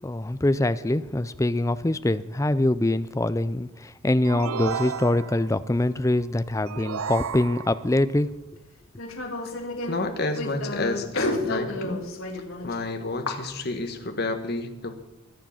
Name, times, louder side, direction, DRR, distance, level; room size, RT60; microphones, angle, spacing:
voice 1, 0.0-8.3, left 1 dB, 15° left, 14 dB, 0.4 m, -24 dB
sound 1, 4.2-5.6 6.7-8.0, right 6 dB, 80° right, 0.6 m, -33 dB
sound 2, 4.6-6.2 7.0-7.1 8.1-8.2 8.8-12.7 13.3-13.9, left 2 dB, 75° left, 2.1 m, -32 dB
voice 2, 9.9-12.0 12.6-14.9, left 2 dB, 45° left, 6 dB, 1.4 m, -30 dB
22.5 x 7.5 x 5.7 m, 0.99 s
head